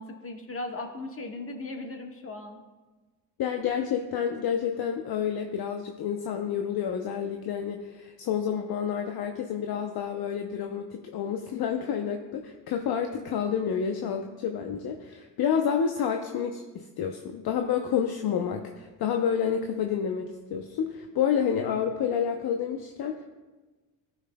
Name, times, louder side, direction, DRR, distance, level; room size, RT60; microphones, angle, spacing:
voice 1, 0.0-2.6, left 2 dB, 30° left, 3 dB, 1.5 m, -37 dB
voice 2, 3.4-23.2, left 8 dB, 50° left, 4 dB, 0.7 m, -29 dB
13.5 x 5.8 x 2.3 m, 1.3 s
hypercardioid pair, 60°, 47 cm